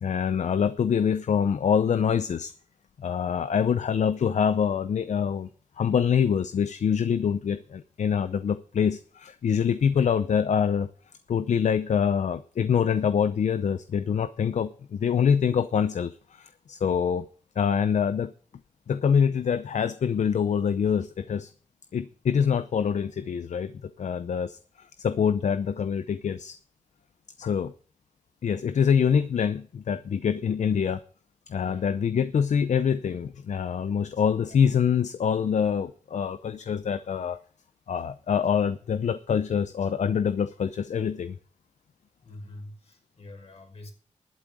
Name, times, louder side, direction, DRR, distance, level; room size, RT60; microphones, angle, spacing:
voice 1, 0.0-2.5 3.0-5.5 5.8-10.9 11.3-17.3 17.6-18.3 18.9-21.5 21.9-26.6 27.4-27.7 28.4-31.0 31.5-37.4 37.9-41.4, left 7 dB, 70° left, 13 dB, 0.6 m, -25 dB
voice 2, 31.6-31.9 34.4-34.6 42.2-43.9, left 1 dB, 55° left, 3 dB, 5.3 m, -46 dB
12.0 x 8.3 x 6.2 m, 0.43 s
cardioid pair, 60°, 13 cm